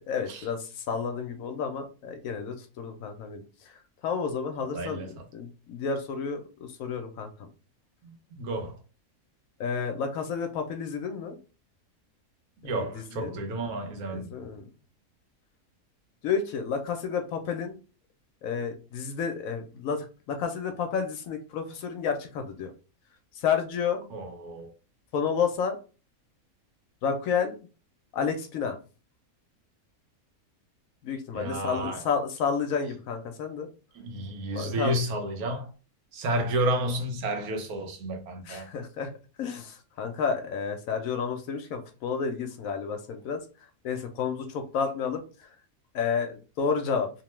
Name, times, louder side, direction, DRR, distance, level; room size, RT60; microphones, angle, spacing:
voice 1, 0.1-3.7 4.0-7.5 9.6-11.4 12.9-13.4 14.1-14.6 16.2-17.8 18.4-22.7 23.4-24.1 25.1-25.8 27.0-27.6 28.1-28.8 31.0-33.7 34.5-35.0 38.5-39.1 39.4-43.4 43.8-45.2 45.9-47.1, left 6 dB, 75° left, 1.0 m, -31 dB
voice 2, 4.6-5.1 8.0-8.8 12.6-14.3 24.1-24.7 31.3-32.1 33.9-35.7 36.1-38.7, right 1 dB, 90° right, 1.2 m, -31 dB
2.9 x 2.1 x 3.0 m
omnidirectional pair, 1.5 m